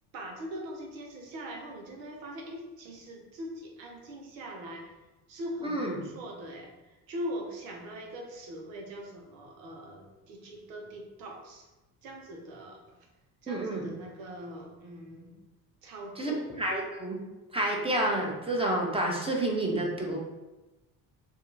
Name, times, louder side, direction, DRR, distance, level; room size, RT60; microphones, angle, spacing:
voice 1, 0.1-5.0 5.3-11.7 12.0-13.0 13.4-15.4 15.8-16.5, equal, 85° right, 1 dB, 0.8 m, -41 dB
voice 2, 5.6-6.0 13.5-13.8 16.2-17.2 17.5-20.2, right 1 dB, 10° right, -1 dB, 0.8 m, -29 dB
2.7 x 2.3 x 3.9 m, 1.1 s
hypercardioid pair, 55°, 50 cm